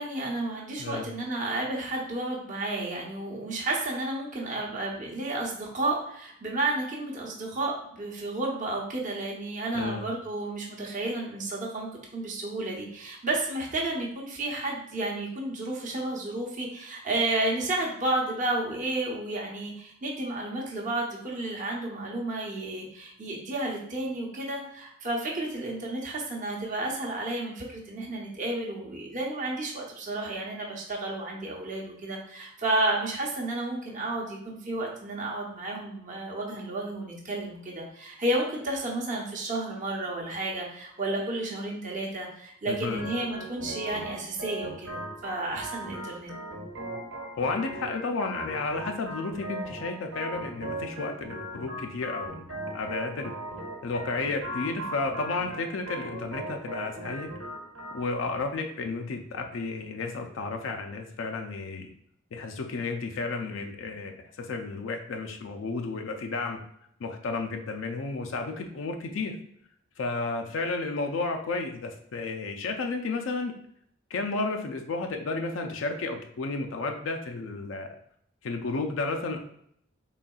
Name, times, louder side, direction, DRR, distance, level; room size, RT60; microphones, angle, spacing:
voice 1, 0.0-46.3, right 2 dB, 40° right, -2 dB, 0.8 m, -32 dB
voice 2, 9.7-10.1 42.7-43.0 47.3-52.5 52.7-53.3 53.8-57.3 57.9-61.9 62.3-66.6 67.0-69.4 70.0-73.5 74.1-78.0 78.4-79.4, left 3 dB, 75° left, 4 dB, 0.4 m, -32 dB
Organ, 43.0-58.0, right 1 dB, 75° right, 1.1 m, -38 dB
4.0 x 3.6 x 2.3 m, 0.68 s
head